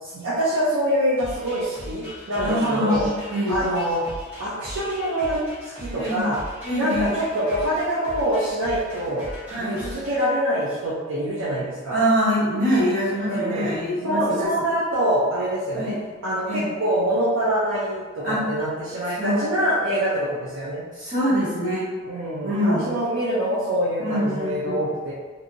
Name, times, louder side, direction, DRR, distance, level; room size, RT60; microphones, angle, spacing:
voice 1, 0.0-3.0 3.5-4.1 4.4-6.4 6.7-9.3 9.6-12.0 13.2-13.7 14.0-16.0 16.2-20.9 22.1-25.1, right 1 dB, 70° right, -7 dB, 0.5 m, -25 dB
sound 1, 1.2-10.3, equal, 10° right, 1.1 m, -39 dB
voice 2, 2.4-3.6 5.9-6.3 6.6-7.1 9.5-9.8 11.9-14.5 15.7-15.9 16.4-16.7 18.2-18.4 19.2-19.4 20.9-21.9 22.4-22.8 24.0-24.8, equal, 40° right, -11 dB, 1.4 m, -24 dB
2.7 x 2.6 x 2.6 m, 1.4 s
head